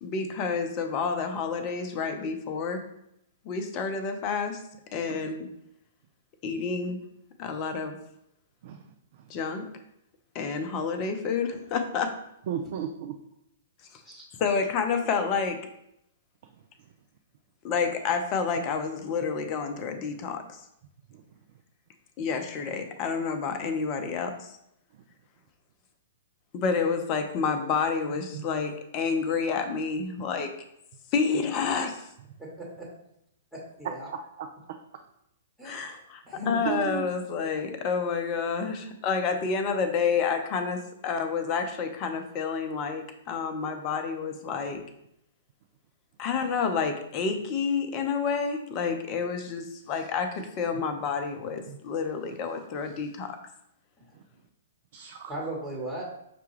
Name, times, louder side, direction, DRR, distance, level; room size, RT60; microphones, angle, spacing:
voice 1, 0.0-2.8 3.4-4.6 4.9-5.5 6.4-7.0 7.4-8.0 9.3-9.7 10.3-12.1 13.9-14.0 14.4-15.6 17.6-20.6 22.2-24.6 26.5-30.5 31.1-32.1 35.6-44.8 46.2-53.4, left 5 dB, 35° left, 6 dB, 0.6 m, -29 dB
voice 2, 8.6-9.3 12.5-13.2 21.1-21.2 28.3-28.5 34.4-35.0 36.6-37.1 50.7-50.8 51.7-51.8 54.1-54.2 54.9-55.3, right 7 dB, 50° right, 5 dB, 0.4 m, -36 dB
voice 3, 32.4-32.9 33.8-34.1 35.6-36.0 36.3-36.6 54.0-54.1 55.3-56.0, right 1 dB, ahead, -5 dB, 1.1 m, -36 dB
5.8 x 2.3 x 3.2 m, 0.78 s
figure-of-eight pair, 115°, 0 cm